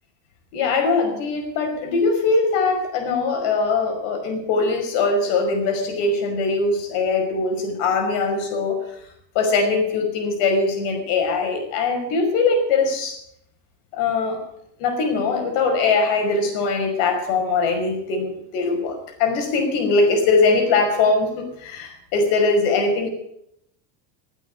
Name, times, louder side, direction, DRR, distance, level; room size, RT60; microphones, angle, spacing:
voice 1, 0.5-8.8 9.3-13.2 13.9-14.4 14.8-23.1, left 3 dB, 65° left, 4 dB, 5.7 m, -21 dB
17.5 x 9.0 x 8.4 m, 0.73 s
supercardioid pair, 115°, 49 cm